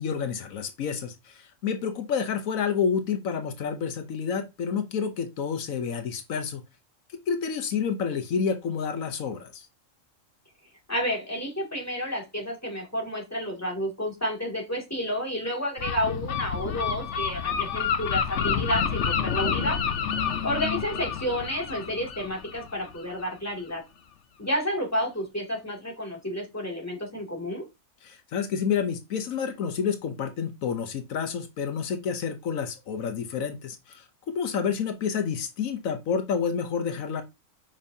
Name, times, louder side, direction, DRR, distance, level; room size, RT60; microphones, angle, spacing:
voice 1, 0.0-6.6 7.3-9.7 20.1-20.8 28.0-37.2, left 6 dB, 85° left, 8 dB, 1.3 m, -29 dB
voice 2, 10.9-19.8 20.4-23.8 24.4-27.6, equal, 10° left, -2 dB, 2.4 m, -30 dB
Gull seagull, 15.8-23.3, left 7 dB, 60° left, 1.1 m, -29 dB
7.2 x 5.2 x 2.7 m, 0.23 s
omnidirectional pair, 1.4 m